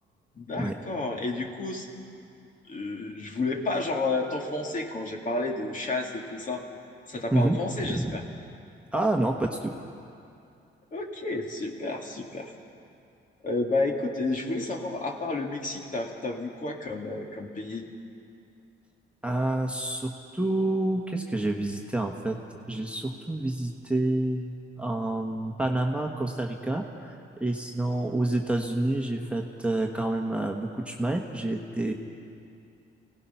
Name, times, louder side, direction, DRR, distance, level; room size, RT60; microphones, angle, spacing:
voice 1, 0.3-1.9 2.7-6.6 7.1-8.2 10.9-12.5 13.4-17.9, left 2 dB, 40° left, 1 dB, 2.5 m, -31 dB
voice 2, 8.9-9.7 19.2-22.4 22.7-31.9, right 1 dB, 5° right, 1 dB, 1.4 m, -28 dB
25.0 x 17.5 x 5.8 m, 2.6 s
cardioid pair, 90°, 20 cm